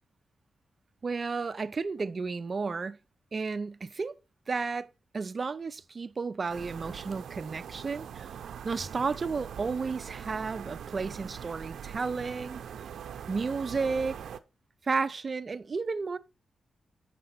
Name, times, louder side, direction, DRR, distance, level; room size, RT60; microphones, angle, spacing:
voice 1, 1.0-3.0 3.3-4.1 4.5-4.9 5.1-8.3 8.6-12.6 13.3-14.2 14.8-16.2, right 4 dB, 40° right, 0.5 m, -32 dB
sound 1, 6.5-14.4, right 8 dB, 90° right, 0.6 m, -42 dB
6.8 x 5.3 x 4.0 m
cardioid pair, 95°, 0 cm